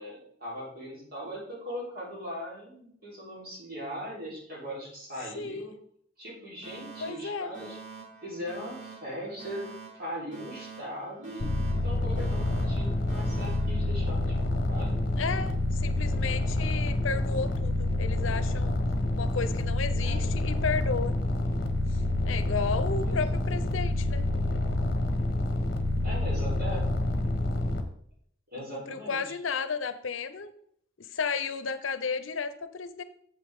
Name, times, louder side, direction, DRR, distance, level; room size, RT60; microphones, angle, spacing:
voice 1, 0.0-5.7 6.2-7.8 8.2-11.5 11.8-15.0 20.0-20.3 23.1-23.2 26.0-26.9 28.5-29.3, equal, 50° right, -4 dB, 3.5 m, -39 dB
voice 2, 5.3-5.7 7.0-7.5 15.2-18.8 19.1-21.2 21.9-24.2 28.6-30.5 31.0-33.0, left 5 dB, 75° left, 12 dB, 0.6 m, -33 dB
Alarm, 6.6-14.6, right 5 dB, 65° right, 4.1 m, -47 dB
sound 1, 11.4-27.8, left 1 dB, 50° left, 1.0 m, -28 dB
8.1 x 7.7 x 3.6 m, 0.65 s
head